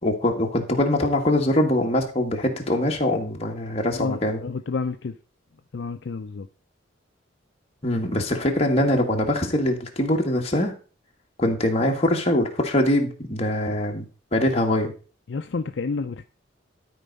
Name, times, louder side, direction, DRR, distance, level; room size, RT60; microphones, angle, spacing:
voice 1, 0.0-4.4 7.8-10.7 11.4-14.1 14.3-14.9, left 1 dB, 30° left, 1.7 m, -23 dB
voice 2, 3.9-5.1 5.7-6.5 15.3-16.2, left 4 dB, 60° left, 0.5 m, -30 dB
12.5 x 4.6 x 5.3 m
head